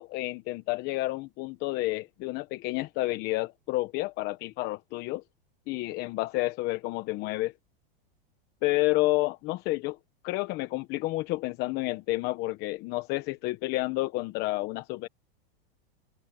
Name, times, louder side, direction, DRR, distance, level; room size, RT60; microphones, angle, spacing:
voice 1, 0.0-5.2 5.7-7.5 8.6-10.0 10.2-15.1, left 20 dB, 35° left, 1.1 m, -30 dB
supercardioid pair, 155°, 29 cm